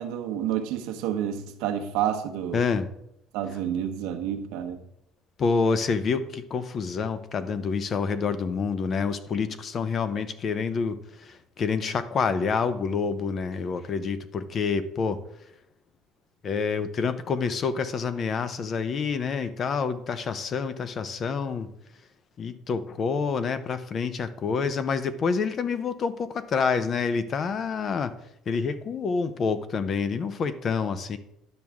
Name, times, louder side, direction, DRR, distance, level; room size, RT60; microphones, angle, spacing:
voice 1, 0.0-2.6 3.3-4.8, right 10 dB, 85° right, 1.0 m, -29 dB
voice 2, 2.5-2.9 5.4-15.2 16.4-21.7 22.4-28.1 28.5-31.2, left 5 dB, 35° left, 0.6 m, -27 dB
10.5 x 6.1 x 3.5 m
cardioid pair, 140°, 0 cm